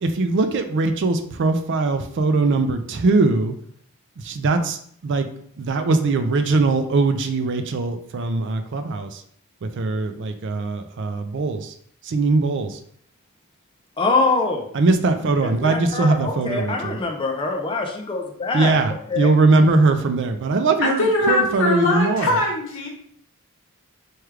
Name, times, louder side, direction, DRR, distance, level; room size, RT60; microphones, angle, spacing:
voice 1, 0.0-3.5 4.2-5.3 5.6-9.2 9.6-11.7 12.0-12.8 14.7-17.0 18.5-22.4, right 3 dB, 55° right, 7 dB, 0.4 m, -21 dB
voice 2, 14.0-14.7 15.4-18.8 19.1-19.3, left 3 dB, 25° left, 1 dB, 0.5 m, -24 dB
voice 3, 20.8-22.9, left 2 dB, 60° left, -1 dB, 1.0 m, -21 dB
4.6 x 2.3 x 3.2 m, 0.63 s
head